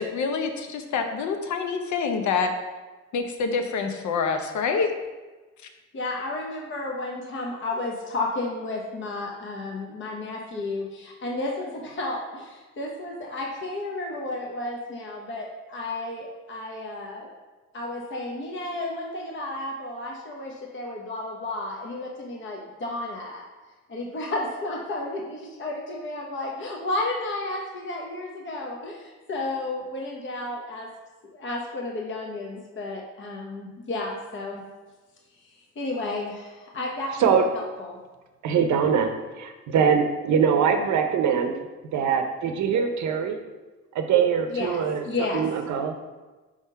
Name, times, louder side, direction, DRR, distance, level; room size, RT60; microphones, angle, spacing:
voice 1, 0.0-2.5 3.1-4.9, left 5 dB, 70° left, 6 dB, 0.8 m, -26 dB
voice 2, 5.9-17.3 17.7-23.4 23.9-30.9 31.2-34.6 35.3-38.0 44.5-45.4, left 2 dB, 40° left, -1 dB, 0.9 m, -32 dB
voice 3, 38.4-39.1 39.4-41.5 41.9-43.4 43.9-45.0 45.3-45.9, right 7 dB, 70° right, 6 dB, 0.6 m, -22 dB
4.9 x 3.6 x 5.5 m, 1.2 s
cardioid pair, 90°, 30 cm